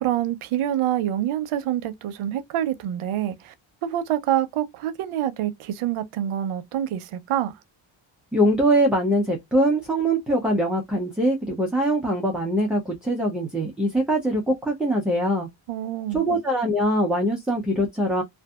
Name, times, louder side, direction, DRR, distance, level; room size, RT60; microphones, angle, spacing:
voice 1, 0.0-3.5 3.8-7.5 15.7-16.3, right 11 dB, 85° right, 0.6 m, -26 dB
voice 2, 8.3-15.5 16.1-18.2, right 1 dB, ahead, 0.4 m, -22 dB
2.6 x 2.5 x 2.2 m
wide cardioid pair, 160°, 49 cm